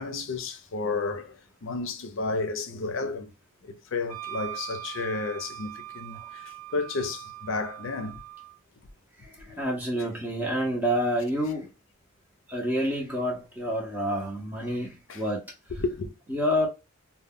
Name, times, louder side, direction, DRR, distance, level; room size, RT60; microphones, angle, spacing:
voice 1, 0.0-3.3 3.6-8.2 15.1-15.2 15.7-16.1, left 3 dB, 65° left, 0.5 m, -32 dB
Wind instrument woodwind instrument, 4.1-8.6, right 14 dB, 85° right, 0.8 m, -41 dB
voice 2, 9.2-11.7 12.5-15.4 16.3-16.7, equal, 10° right, 0.6 m, -28 dB
2.1 x 2.1 x 3.5 m
head